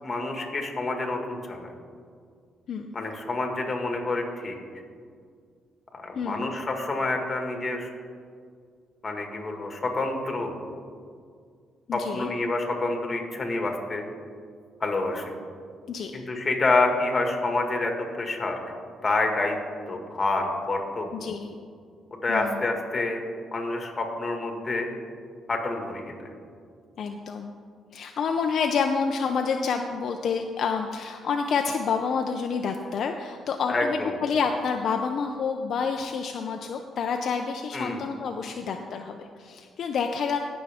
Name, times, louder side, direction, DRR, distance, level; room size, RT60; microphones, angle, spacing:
voice 1, 0.0-1.7 2.9-4.6 5.9-7.9 9.0-10.5 11.9-14.0 14.8-15.3 16.1-17.9 18.2-18.6 19.0-19.6 19.9-21.1 22.2-23.2 23.5-24.9 25.5-26.1 33.7-34.1 37.7-38.0, left 2 dB, 30° left, 3 dB, 1.8 m, -27 dB
voice 2, 6.1-6.5 11.9-12.3 15.9-16.1 21.2-21.6 22.3-22.7 27.0-27.5 27.9-40.4, left 5 dB, 60° left, 4 dB, 0.5 m, -28 dB
17.0 x 6.2 x 3.5 m, 2.2 s
cardioid pair, 90°, 0 cm